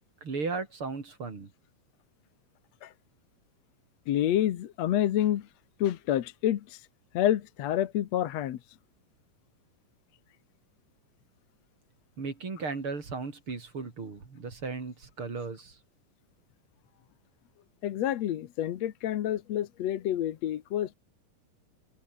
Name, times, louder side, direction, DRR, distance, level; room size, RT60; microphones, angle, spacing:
voice 1, 0.2-1.5 12.2-15.8, right 4 dB, 40° right, 4.4 m, -36 dB
voice 2, 4.1-5.5 5.8-6.8 7.1-8.6 17.8-21.0, left 12 dB, 65° left, 2.0 m, -28 dB
omnidirectional pair, 3.9 m